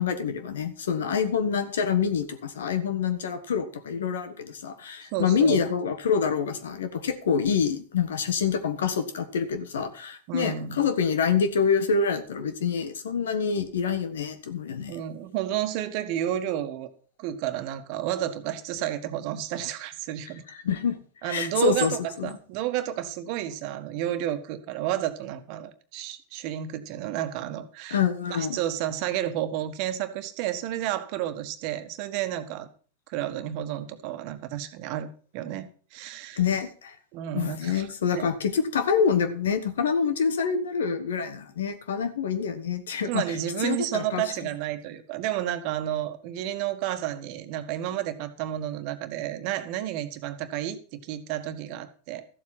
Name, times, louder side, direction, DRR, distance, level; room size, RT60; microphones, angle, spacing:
voice 1, 0.0-15.0 20.6-22.3 27.9-28.6 36.3-36.9 37.3-43.2 43.6-44.2, left 6 dB, 75° left, 10 dB, 1.6 m, -26 dB
voice 2, 5.1-5.6 10.3-10.8 14.9-16.9 17.2-20.4 21.2-28.0 28.3-32.7 33.1-36.4 37.1-37.9 38.1-38.3 43.1-52.3, right 12 dB, 55° right, 9 dB, 1.4 m, -31 dB
13.5 x 7.7 x 5.9 m, 0.41 s
hypercardioid pair, 90°, 0 cm